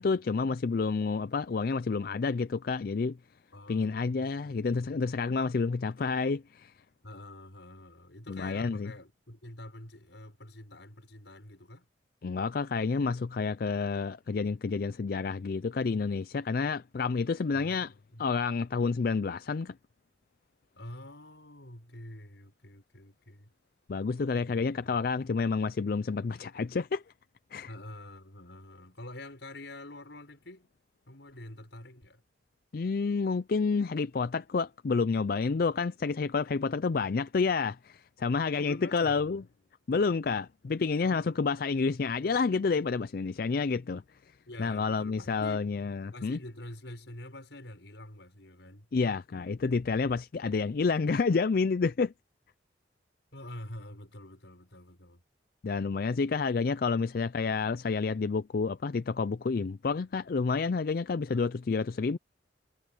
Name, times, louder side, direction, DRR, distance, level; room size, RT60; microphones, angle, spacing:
voice 1, 0.0-3.2 3.7-6.7 8.3-8.9 12.2-17.9 18.2-19.7 23.9-27.0 27.5-27.7 32.7-39.4 39.9-44.0 44.6-46.4 48.9-52.1 55.6-62.2, left 4 dB, 50° left, 0.4 m, -29 dB
voice 2, 3.5-5.0 7.0-11.9 17.5-18.2 20.8-23.5 24.3-25.0 27.7-30.7 31.1-32.2 38.5-39.5 41.0-41.6 41.9-42.1 44.5-45.7 46.1-48.9 53.3-55.2 61.3-61.5, left 1 dB, 75° left, 5.9 m, -47 dB
head